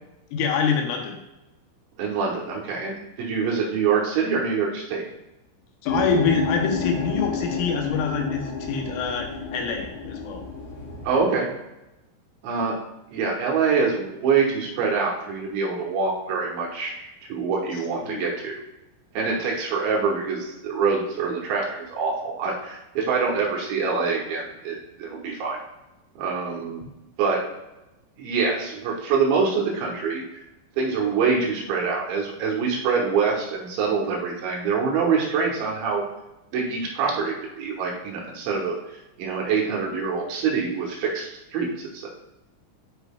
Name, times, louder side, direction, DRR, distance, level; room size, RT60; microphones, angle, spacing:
voice 1, 0.3-1.2 5.8-10.4 18.1-18.3, left 6 dB, 80° left, 2 dB, 3.1 m, -26 dB
voice 2, 2.0-5.0 11.0-11.5 12.4-12.8 13.1-18.6 19.1-25.6 26.2-26.8 27.2-27.4 28.2-30.2 30.8-36.0 36.5-42.1, right 5 dB, 75° right, -2 dB, 3.2 m, -25 dB
sound 1, 5.9-11.2, left 3 dB, 60° left, 3.4 m, -30 dB
10.0 x 4.6 x 2.2 m, 0.95 s
omnidirectional pair, 5.8 m